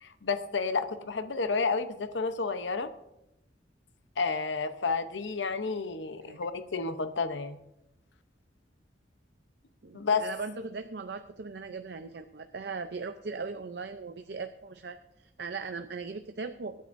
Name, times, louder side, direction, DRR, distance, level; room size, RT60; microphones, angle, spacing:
voice 1, 0.0-2.9 4.2-7.6 9.9-10.2, left 4 dB, 85° left, 9 dB, 0.8 m, -30 dB
voice 2, 6.0-6.4 9.8-16.8, right 4 dB, 65° right, 9 dB, 0.5 m, -39 dB
24.5 x 9.4 x 2.6 m, 0.87 s
head